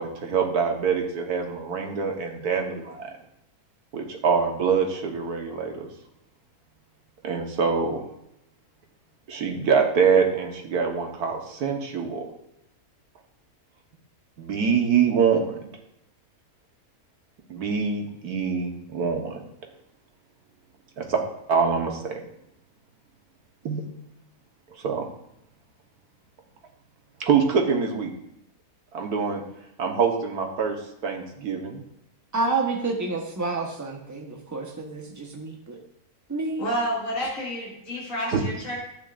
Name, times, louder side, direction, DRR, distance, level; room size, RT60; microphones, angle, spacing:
voice 1, 0.0-3.1 3.9-5.9 7.2-8.0 9.3-12.3 14.4-15.7 17.5-19.4 21.0-21.2 21.5-22.2 23.7-23.8 24.7-25.1 27.2-28.1 28.9-29.4 29.8-30.8 31.0-31.8 38.3-38.4, right 6 dB, 80° right, 3 dB, 1.7 m, -24 dB
voice 2, 32.3-35.8 36.3-36.6, right 3 dB, 15° right, 2 dB, 1.0 m, -29 dB
voice 3, 36.6-38.7, equal, 60° left, -7 dB, 2.7 m, -29 dB
12.0 x 9.0 x 2.5 m, 0.81 s
omnidirectional pair, 1.6 m